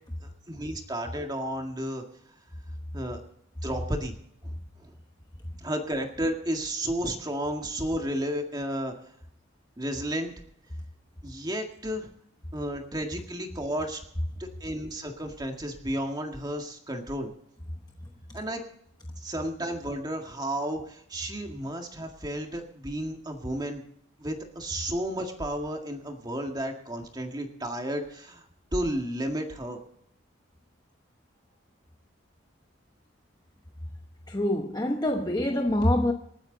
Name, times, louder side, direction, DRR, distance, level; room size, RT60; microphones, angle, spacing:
voice 1, 0.2-2.0 2.9-3.2 3.6-4.2 4.4-4.9 5.6-8.9 9.8-10.3 11.2-12.1 12.5-14.0 14.4-17.3 18.3-18.6 19.2-23.8 24.2-28.4 28.7-29.8, right 1 dB, 20° right, 1.9 m, -32 dB
voice 2, 34.3-36.1, left 1 dB, 20° left, 1.0 m, -25 dB
27.5 x 9.4 x 4.0 m
head